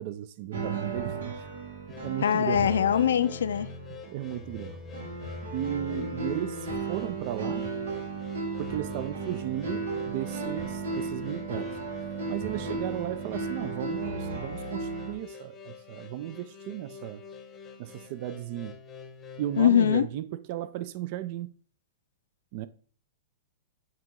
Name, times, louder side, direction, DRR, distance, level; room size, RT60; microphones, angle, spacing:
voice 1, 0.0-1.5 2.0-2.7 4.1-4.8 5.5-7.7 8.6-11.8 12.3-17.2 17.8-18.8 19.4-21.5 22.5-22.7, right 13 dB, 50° right, 0.4 m, -35 dB
sound 1, 0.5-15.1, right 3 dB, 80° right, 1.8 m, -35 dB
sound 2, 1.9-19.6, left 6 dB, 20° left, 0.8 m, -47 dB
voice 2, 2.2-3.7 19.6-20.1, left 9 dB, 85° left, 0.4 m, -22 dB
8.8 x 2.9 x 3.7 m
hypercardioid pair, 135°, 0 cm